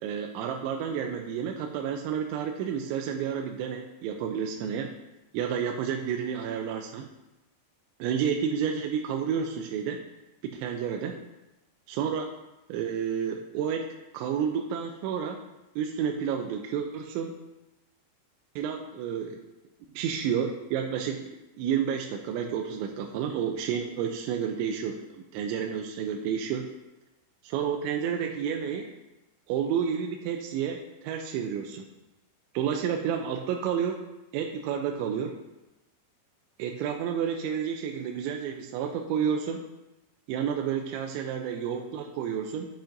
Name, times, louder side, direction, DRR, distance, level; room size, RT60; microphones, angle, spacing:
voice 1, 0.0-4.9 5.3-7.1 8.0-10.0 10.4-11.2 11.9-12.3 12.7-15.4 15.8-17.3 18.6-19.4 19.9-21.3 21.6-26.7 27.4-28.9 29.5-31.9 32.5-34.0 34.3-35.4 36.6-39.6 40.3-42.7, right 7 dB, 85° right, 3 dB, 2.9 m, -30 dB
8.6 x 8.0 x 2.6 m, 0.98 s
omnidirectional pair, 5.2 m